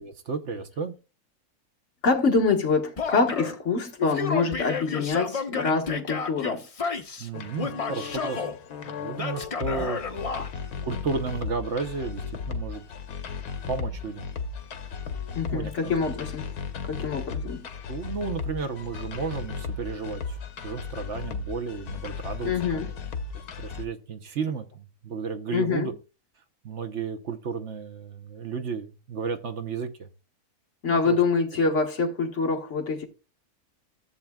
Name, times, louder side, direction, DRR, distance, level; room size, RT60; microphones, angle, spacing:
voice 1, 0.3-0.9 7.2-8.5 8.8-10.0 10.8-12.8 13.7-14.3 15.5-15.9 17.9-20.4 20.6-22.9 23.6-25.9 26.6-30.1 30.9-31.2, right 5 dB, 55° right, 1.0 m, -33 dB
voice 2, 2.0-6.7 15.3-16.5 16.9-17.7 22.4-22.9 25.5-25.9 30.8-33.1, left 4 dB, 50° left, 1.6 m, -25 dB
Male speech man speaking / Yell, 3.0-3.6 4.0-7.3 7.6-8.5 9.2-10.5, left 4 dB, 35° left, 0.6 m, -31 dB
sound 1, 7.3-23.9, left 5 dB, 80° left, 1.5 m, -36 dB
14.0 x 7.5 x 2.3 m
omnidirectional pair, 1.6 m